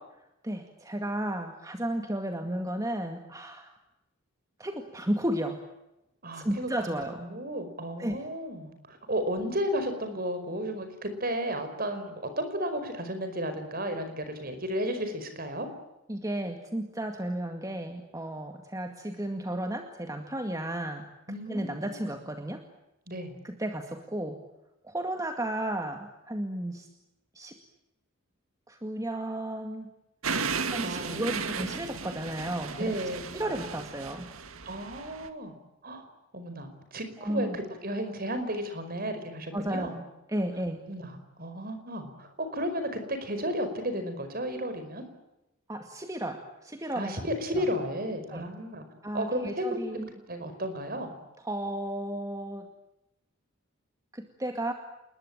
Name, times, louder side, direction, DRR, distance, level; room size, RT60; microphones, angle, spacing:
voice 1, 0.4-3.7 4.6-5.6 6.3-7.2 8.0-8.2 16.1-21.1 21.5-22.6 23.4-24.4 24.8-26.9 27.3-27.6 28.7-29.9 30.7-33.0 33.3-34.3 37.2-37.6 39.5-40.0 40.3-40.8 45.7-47.2 47.5-47.7 48.3-48.5 49.0-50.1 51.4-52.7 54.1-54.7, right 1 dB, 15° right, 5 dB, 2.1 m, -33 dB
voice 2, 6.2-15.7 21.3-22.1 23.1-23.4 30.8-31.5 32.8-33.2 34.7-35.5 35.8-36.1 36.3-39.9 40.9-41.1 41.4-45.1 47.0-48.9 49.1-49.7 49.9-51.1, equal, 45° right, 8 dB, 5.2 m, -33 dB
sound 1, 30.2-35.3, right 5 dB, 80° right, 2.0 m, -35 dB
29.0 x 21.0 x 8.9 m, 0.90 s
head